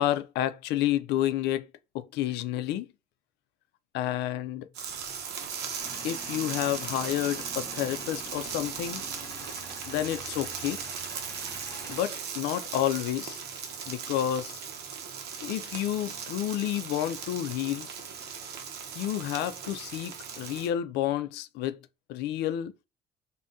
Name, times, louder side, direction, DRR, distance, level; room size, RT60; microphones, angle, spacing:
voice 1, 0.0-1.7 1.9-2.9 3.9-4.7 6.0-9.0 9.9-10.8 11.9-13.4 13.9-14.6 15.4-17.9 19.0-21.8 22.1-22.7, left 12 dB, 85° left, 0.4 m, -30 dB
sound 1, 4.7-20.7, right 7 dB, 75° right, 0.7 m, -38 dB
Male speech man speaking / Vehicle / Engine starting, 5.8-12.0, left 1 dB, 15° left, 0.9 m, -46 dB
3.5 x 2.2 x 2.6 m
cardioid pair, 110°, 17 cm